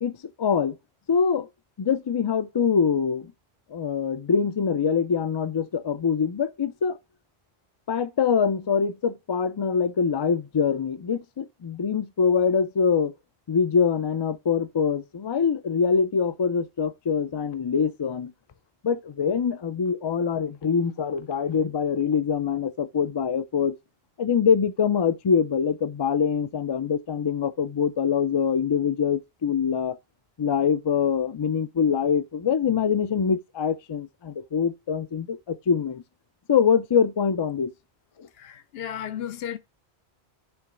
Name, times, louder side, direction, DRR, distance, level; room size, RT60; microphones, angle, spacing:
voice 1, 0.0-0.8 1.1-1.5 1.8-3.3 3.7-7.0 7.9-13.1 13.5-18.3 18.8-23.8 24.2-30.0 30.4-36.0 36.5-37.7 38.2-38.3, left 6 dB, 45° left, 0.3 m, -24 dB
voice 2, 38.4-39.6, left 9 dB, 70° left, 0.8 m, -34 dB
7.1 x 3.1 x 4.9 m
omnidirectional pair, 1.1 m